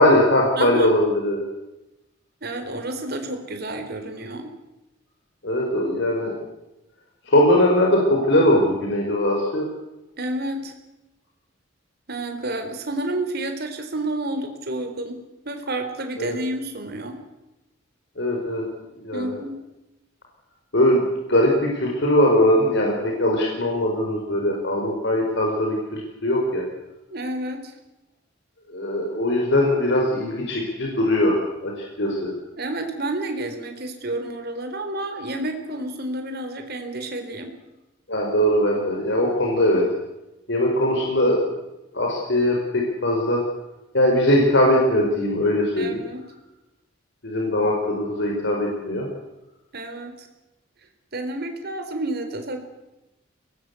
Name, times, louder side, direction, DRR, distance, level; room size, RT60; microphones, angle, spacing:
voice 1, 0.0-1.4 5.4-6.3 7.3-9.6 16.2-16.4 18.2-18.6 19.0-19.4 20.7-21.0 21.3-26.6 28.7-31.7 32.0-32.3 38.1-39.8 40.5-41.4 41.9-43.4 43.9-46.0 47.2-49.0, left 1 dB, 60° left, 0 dB, 4.7 m, -20 dB
voice 2, 0.6-0.9 2.4-4.5 10.2-10.7 12.1-17.2 19.1-19.6 27.1-27.7 32.6-37.5 45.8-46.3 49.7-50.3 51.1-52.6, right 2 dB, 50° right, 6 dB, 3.9 m, -30 dB
23.5 x 20.0 x 8.3 m, 0.98 s
head